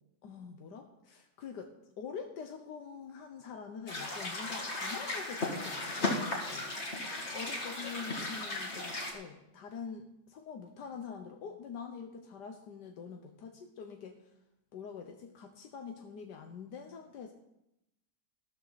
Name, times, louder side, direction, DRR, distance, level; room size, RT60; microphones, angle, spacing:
voice 1, 0.2-6.7 7.3-14.3 14.7-17.3, left 6 dB, 90° left, 4 dB, 1.6 m, -45 dB
sound 1, 3.9-9.1, left 2 dB, 40° left, 2.5 m, -36 dB
14.0 x 13.0 x 4.1 m, 0.84 s
omnidirectional pair, 1.7 m